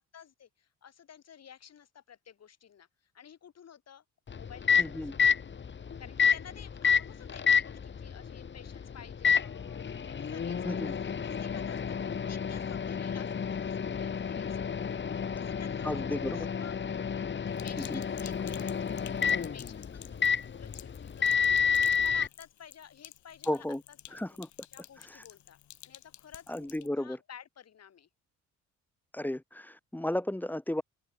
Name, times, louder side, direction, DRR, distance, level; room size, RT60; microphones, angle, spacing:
voice 1, 0.0-5.4 6.0-21.7 22.0-24.2 24.7-28.1, left 8 dB, 55° left, 8.0 m, -53 dB
Microwave oven, 4.3-22.3, left 6 dB, 40° left, 1.7 m, -30 dB
voice 2, 4.8-5.1 10.6-10.9 15.8-16.5 17.9-18.0 23.5-23.8 24.1-24.5 26.5-27.2 29.1-30.8, left 1 dB, 5° left, 1.2 m, -33 dB
Sink (filling or washing), 17.5-26.9, left 12 dB, 70° left, 2.7 m, -52 dB
open air
cardioid pair, 90°, 30 cm